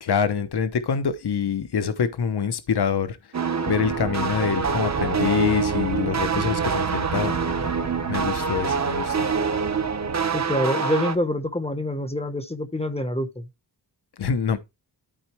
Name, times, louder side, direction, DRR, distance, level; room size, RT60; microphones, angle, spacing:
voice 1, 0.0-3.2 3.7-7.4 8.1-9.3 14.2-14.6, left 7 dB, 55° left, 1.0 m, -25 dB
sound 1, 3.3-11.2, right 5 dB, 35° right, 0.9 m, -25 dB
Wind, 3.6-10.6, right 5 dB, 55° right, 1.2 m, -34 dB
voice 2, 10.3-13.5, left 1 dB, 15° left, 0.9 m, -26 dB
12.5 x 4.3 x 3.0 m
wide cardioid pair, 120°, 46 cm